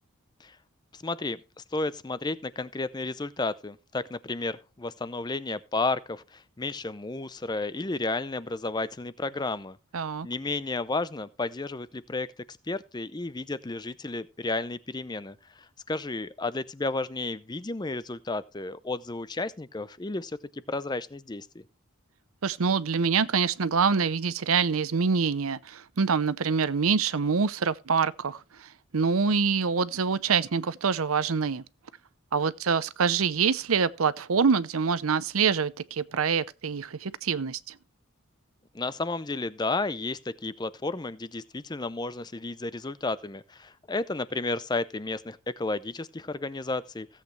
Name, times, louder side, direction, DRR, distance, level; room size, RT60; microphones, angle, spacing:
voice 1, 0.9-1.4 1.7-9.8 10.2-12.3 12.7-21.6 38.7-47.1, left 3 dB, 20° left, 0.5 m, -32 dB
voice 2, 9.9-10.3 22.4-31.6 32.3-37.8, right 5 dB, 85° right, 0.7 m, -25 dB
16.0 x 8.3 x 3.2 m
head